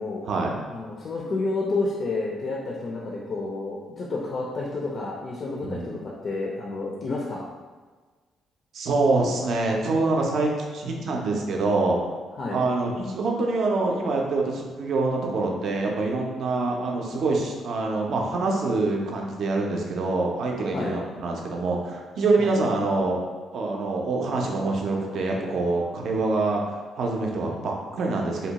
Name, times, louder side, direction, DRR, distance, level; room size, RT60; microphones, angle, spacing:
voice 1, 0.7-7.4 12.4-12.6 20.7-21.0 22.4-22.6, left 3 dB, 50° left, -3 dB, 0.4 m, -30 dB
voice 2, 5.6-6.0 8.7-12.0 12.5-23.2 23.5-28.5, right 3 dB, 65° right, 0 dB, 0.4 m, -25 dB
2.7 x 2.1 x 2.8 m, 1.4 s
cardioid pair, 90°, 0 cm